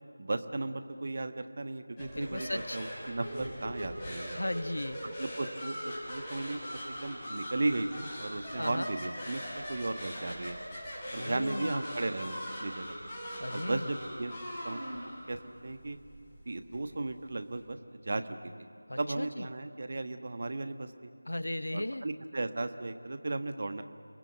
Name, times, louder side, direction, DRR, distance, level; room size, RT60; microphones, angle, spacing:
voice 1, 0.2-4.4 5.2-9.4 9.7-10.6 11.1-12.9 13.5-14.3 14.6-14.8 15.3-15.4 15.6-16.0 16.4-18.2 18.6-18.7 19.0-21.1 21.7-23.8, right 2 dB, 40° right, 9 dB, 1.3 m, -35 dB
voice 2, 2.0-2.8 4.3-5.0 8.6-8.9 11.2-11.8 13.4-13.9 18.9-19.5 21.3-22.0, left 1 dB, 65° left, 15 dB, 0.9 m, -36 dB
sound 1, 2.0-17.6, equal, 10° left, 5.3 m, -41 dB
29.5 x 19.0 x 8.1 m, 2.4 s
figure-of-eight pair, 165°, 0 cm